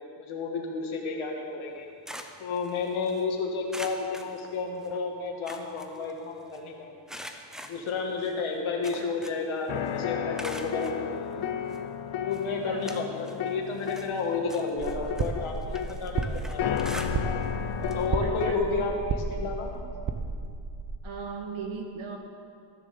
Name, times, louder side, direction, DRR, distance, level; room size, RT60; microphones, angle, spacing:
voice 1, 0.2-1.9 2.4-6.9 7.6-11.4 12.2-16.9 17.9-19.7, left 4 dB, 80° left, 1 dB, 1.8 m, -31 dB
sound 1, 1.7-3.2 3.7-5.0 5.3-6.6 7.1-9.6 9.9-11.0 11.7-11.8 12.3-13.4 13.7-17.6 17.8-18.1 18.4-18.5 19.7-19.8, equal, ahead, 0.5 m, -44 dB
sound 2, 9.7-18.5, left 8 dB, 65° left, 0.7 m, -33 dB
voice 2, 12.7-13.0 18.2-18.9 21.0-22.2, right 5 dB, 90° right, 3 dB, 1.7 m, -38 dB
sound 3, 14.8-21.0, right 4 dB, 40° right, 0.7 m, -33 dB
14.0 x 7.1 x 6.9 m, 2.3 s
wide cardioid pair, 165°, 48 cm